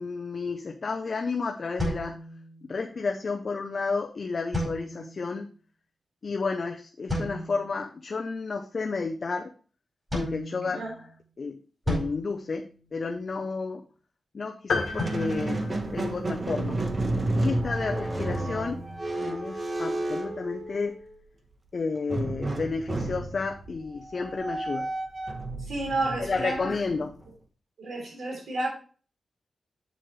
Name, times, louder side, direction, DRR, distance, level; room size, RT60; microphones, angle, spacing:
voice 1, 0.0-2.1 2.6-5.5 6.2-9.5 10.1-10.8 11.4-11.6 11.9-12.7 12.9-13.8 14.3-16.8 17.3-18.8 19.2-20.9 21.7-24.9 26.2-27.1, left 4 dB, 50° left, 3 dB, 0.7 m, -31 dB
sound 1, 1.8-2.9 4.5-5.3 7.1-7.8 10.1-11.2 11.9-13.3 15.0-16.5, left 1 dB, 15° right, 4.7 m, -34 dB
sound 2, 14.7-16.5, left 4 dB, 85° left, 1.6 m, -32 dB
Squeak, 14.8-21.2 22.1-27.3, right 2 dB, 35° right, 1.3 m, -31 dB
voice 2, 25.6-26.7 27.8-28.7, right 2 dB, 90° right, -1 dB, 3.6 m, -31 dB
7.6 x 7.5 x 3.2 m, 0.39 s
wide cardioid pair, 110°, 0 cm